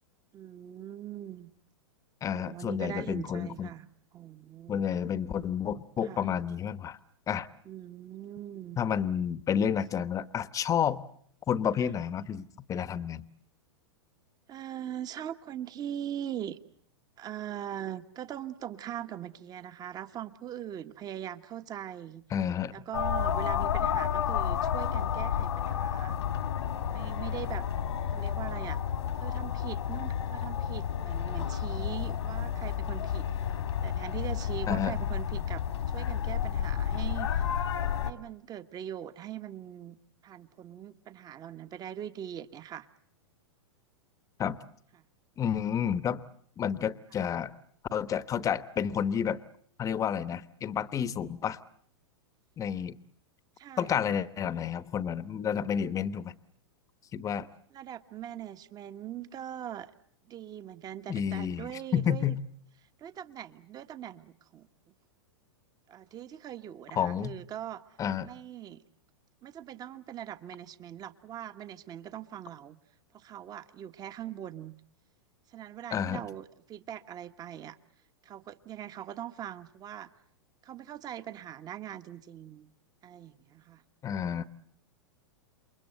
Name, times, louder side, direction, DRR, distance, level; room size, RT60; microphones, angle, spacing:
voice 1, 0.3-1.5 2.3-3.9 4.1-4.9 6.0-6.2 7.7-8.8 14.5-16.6 17.2-22.2 22.7-26.2 26.9-27.8 28.1-28.8 29.2-33.2 33.8-37.4 38.0-40.0 40.2-42.9 53.6-54.2 57.7-59.9 60.2-62.3 63.0-64.7 65.9-67.8 68.3-68.8 69.4-72.8 73.1-74.7 75.5-77.8 78.2-80.1 80.6-82.7 83.0-83.8, right 10 dB, 25° right, 12 dB, 1.2 m, -41 dB
voice 2, 2.2-3.7 4.7-7.0 7.3-7.5 8.8-11.0 11.5-13.2 22.3-22.7 34.7-35.0 44.4-44.6 45.4-46.2 46.6-47.5 47.9-49.4 49.8-51.6 52.6-53.0 53.8-56.3 57.1-57.5 61.1-62.4 67.0-67.4 68.0-68.3 75.9-76.2 84.0-84.4, left 8 dB, 25° left, 15 dB, 1.0 m, -30 dB
sound 1, 22.9-38.1, left 8 dB, 85° left, 2.1 m, -31 dB
28.5 x 23.0 x 7.9 m, 0.64 s
hypercardioid pair, 125°, 14 cm